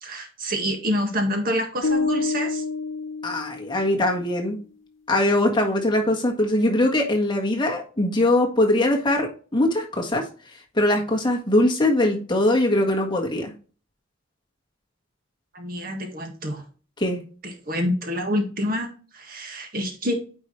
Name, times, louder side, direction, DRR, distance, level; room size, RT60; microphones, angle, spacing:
voice 1, 0.0-2.6 6.0-6.1 15.5-16.6 17.4-18.9 19.1-20.1, equal, 45° right, 4 dB, 1.6 m, -27 dB
sound 1, 1.8-4.0, left 4 dB, 80° left, 0.8 m, -27 dB
voice 2, 3.2-4.6 5.1-10.2 10.7-13.5 17.0-17.2, left 1 dB, 25° left, 1 dB, 1.5 m, -21 dB
9.5 x 4.8 x 3.1 m, 0.38 s
head